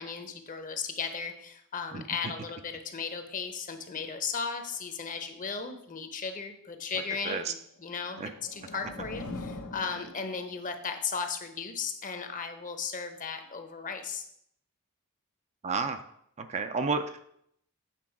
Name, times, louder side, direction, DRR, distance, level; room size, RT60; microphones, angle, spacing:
voice 1, 0.0-7.6 7.8-14.2, left 5 dB, 40° left, 7 dB, 0.9 m, -36 dB
sound 1, 8.0-10.8, left 2 dB, 80° left, 1.0 m, -42 dB
voice 2, 15.6-16.0 16.4-17.2, right 4 dB, 30° right, 8 dB, 0.4 m, -31 dB
8.4 x 3.9 x 5.9 m, 0.71 s
head